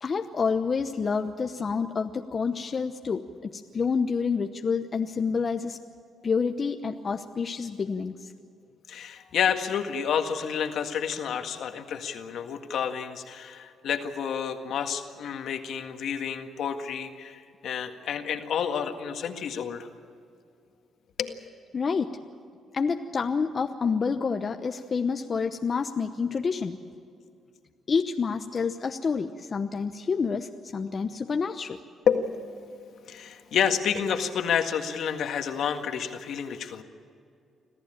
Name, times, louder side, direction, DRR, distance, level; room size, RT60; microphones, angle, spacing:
voice 1, 0.0-5.8 6.2-8.3 21.7-22.2 22.7-26.8 27.9-31.8, left 5 dB, 40° left, 6 dB, 0.9 m, -28 dB
voice 2, 8.9-19.9 21.2-21.4 32.1-32.7 33.1-36.8, left 7 dB, 70° left, 6 dB, 1.8 m, -29 dB
26.0 x 15.0 x 9.0 m, 2.4 s
cardioid pair, 90°, 0 cm